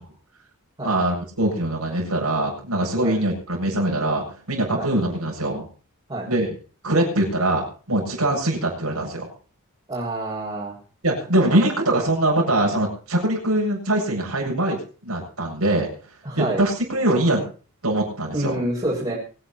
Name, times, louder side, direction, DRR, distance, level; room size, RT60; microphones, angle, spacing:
voice 1, 0.8-5.6 6.3-6.5 6.8-9.3 11.0-15.9 16.3-17.4 17.8-18.6, right 1 dB, 90° right, -1 dB, 7.7 m, -22 dB
voice 2, 9.9-10.7 16.2-16.6 18.3-19.1, right 1 dB, 25° right, -6 dB, 6.5 m, -27 dB
24.0 x 9.9 x 4.4 m, 0.39 s
head